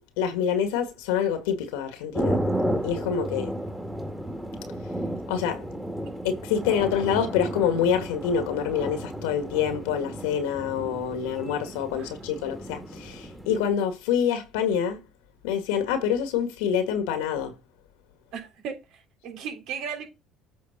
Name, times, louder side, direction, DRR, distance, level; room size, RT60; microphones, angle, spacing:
voice 1, 0.2-2.4 2.8-3.6 5.3-5.6 6.2-15.0 15.4-17.5, left 8 dB, 90° left, 1.9 m, -26 dB
sound 1, 2.1-13.7, right 1 dB, ahead, 2.1 m, -33 dB
voice 2, 12.0-12.3 18.3-20.1, right 7 dB, 65° right, 3.4 m, -36 dB
8.5 x 3.8 x 6.0 m
supercardioid pair, 90°, 0 cm